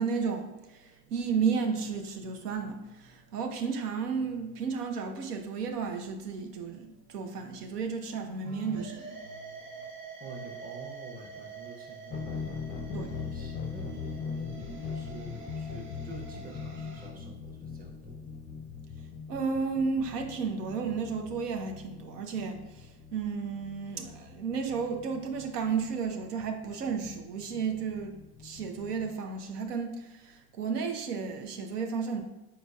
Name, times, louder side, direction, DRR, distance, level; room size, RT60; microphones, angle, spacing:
voice 1, 0.0-9.4 12.9-13.1 19.3-32.2, right 5 dB, 85° right, 0.6 m, -33 dB
sound 1, 8.4-17.1, right 4 dB, 65° right, 1.2 m, -46 dB
voice 2, 10.2-18.3, right 2 dB, 20° right, 0.8 m, -48 dB
sound 2, 12.1-29.1, left 5 dB, 20° left, 0.5 m, -41 dB
4.1 x 3.9 x 2.3 m
hypercardioid pair, 80°, 46 cm